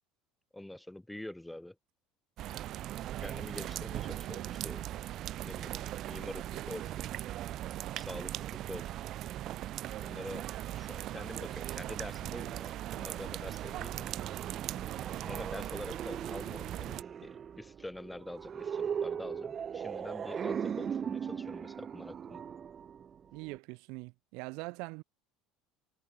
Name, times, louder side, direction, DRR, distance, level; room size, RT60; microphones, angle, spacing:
voice 1, 0.5-1.8 3.2-4.8 5.4-5.8 6.1-7.0 7.9-9.0 10.0-10.5 10.7-14.1 15.2-22.4, left 1 dB, 5° left, 2.2 m, -45 dB
sound 1, 2.4-17.0, right 13 dB, 50° right, 1.0 m, -39 dB
sound 2, 13.9-23.6, right 7 dB, 35° right, 1.6 m, -39 dB
voice 2, 14.7-15.1 23.3-25.0, right 30 dB, 75° right, 4.0 m, -43 dB
supercardioid pair, 115°, 0 cm